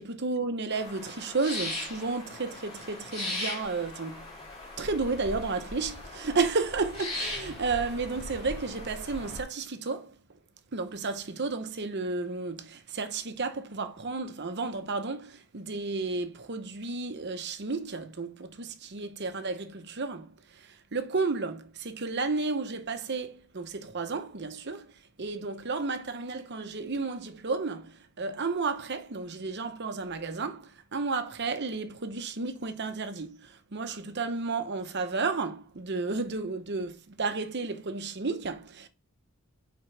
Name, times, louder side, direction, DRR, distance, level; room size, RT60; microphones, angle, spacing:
voice 1, 0.0-4.3 4.8-10.1 10.7-24.9 25.2-38.9, right 4 dB, 50° right, 0.9 m, -32 dB
sound 1, 0.7-9.4, left 2 dB, 30° left, 3.1 m, -39 dB
7.1 x 5.1 x 3.3 m
head